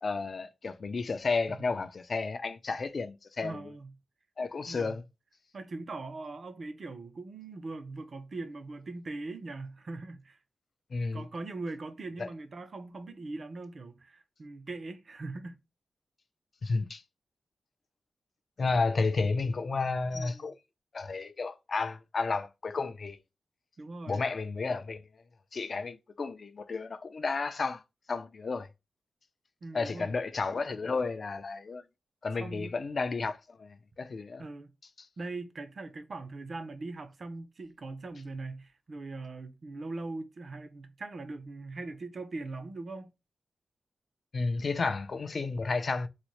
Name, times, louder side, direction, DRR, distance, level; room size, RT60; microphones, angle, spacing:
voice 1, 0.0-3.6 4.4-5.0 10.9-11.2 12.2-12.3 16.6-17.0 18.6-20.6 20.9-23.2 24.1-25.0 25.5-27.8 28.1-28.7 29.7-31.8 32.2-34.5 44.3-46.1, left 4 dB, 40° left, 0.4 m, -32 dB
voice 2, 3.4-3.9 4.7-5.0 5.5-10.4 11.1-15.6 20.1-20.6 23.8-24.2 29.6-30.1 32.4-32.7 34.4-34.7 35.2-43.1, right 3 dB, 40° right, 0.5 m, -41 dB
3.9 x 2.1 x 2.9 m
wide cardioid pair, 175°, 0 cm